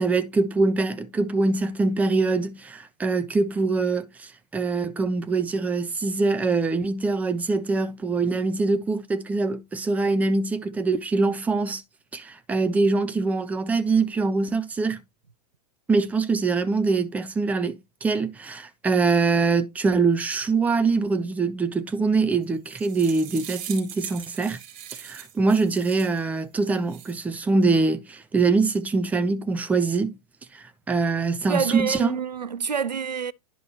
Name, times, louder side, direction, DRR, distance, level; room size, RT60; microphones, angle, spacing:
voice 1, 0.0-11.8 12.1-15.0 15.9-24.6 25.0-30.1 30.5-32.2, right 3 dB, 5° right, 0.5 m, -24 dB
sound 1, 22.4-26.2 26.7-27.2, right 10 dB, 40° right, 3.5 m, -40 dB
voice 2, 31.5-33.3, right 6 dB, 85° right, 0.5 m, -27 dB
10.5 x 5.3 x 3.0 m
figure-of-eight pair, 100°, 21 cm